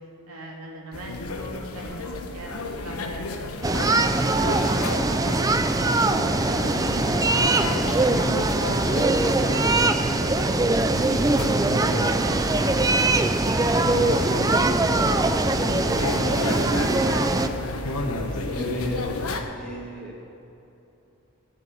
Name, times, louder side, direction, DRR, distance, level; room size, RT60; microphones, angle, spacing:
voice 1, 0.3-2.0 2.3-3.3 3.7-10.5 11.0-16.6, right 1 dB, 85° right, -1 dB, 2.5 m, -40 dB
sound 1, 0.9-19.4, left 2 dB, 85° left, 1.1 m, -32 dB
sound 2, 3.6-17.5, right 2 dB, 15° right, 0.5 m, -22 dB
voice 2, 17.9-19.1 19.6-20.1, left 1 dB, 5° left, -3 dB, 1.9 m, -33 dB
13.0 x 8.0 x 8.5 m, 2.9 s
head